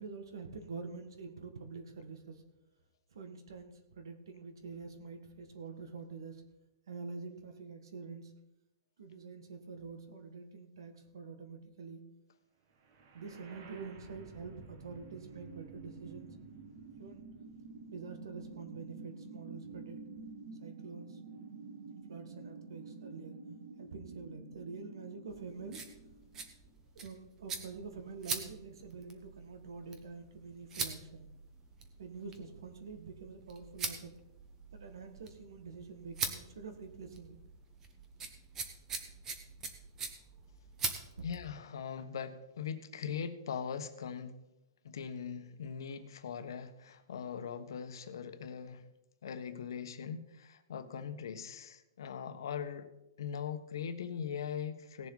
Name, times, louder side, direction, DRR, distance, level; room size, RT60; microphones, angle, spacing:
voice 1, 0.0-2.4 3.1-6.4 6.9-8.3 9.0-12.0 13.1-16.4 17.0-17.3 17.9-20.0 20.6-21.2 22.1-23.4 23.8-25.8 27.0-31.3 32.0-34.1 34.7-37.4 41.2-41.3, right 4 dB, 75° right, 7 dB, 1.9 m, -46 dB
sound 1, 12.8-26.8, right 4 dB, 45° right, 1.6 m, -50 dB
sound 2, 25.3-41.5, right 4 dB, 15° right, 1.1 m, -44 dB
voice 2, 41.2-44.4 44.8-48.8 49.2-52.9 53.2-55.1, left 7 dB, 70° left, 9 dB, 1.2 m, -41 dB
18.0 x 7.3 x 4.0 m, 0.93 s
hypercardioid pair, 165°, 2 cm